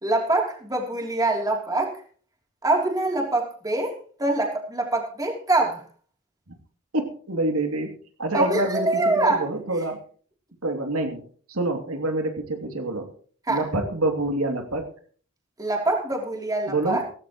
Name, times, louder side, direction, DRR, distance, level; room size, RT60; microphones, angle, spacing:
voice 1, 0.0-1.9 2.6-3.9 4.2-5.8 8.3-9.5 13.5-13.6 15.6-17.0, right 2 dB, 15° right, 1 dB, 3.2 m, -24 dB
voice 2, 6.9-7.9 8.2-10.0 10.6-11.2 11.5-13.1 13.5-14.9 16.7-17.0, right 2 dB, 85° right, 4 dB, 2.8 m, -26 dB
17.0 x 15.5 x 3.1 m, 0.44 s
head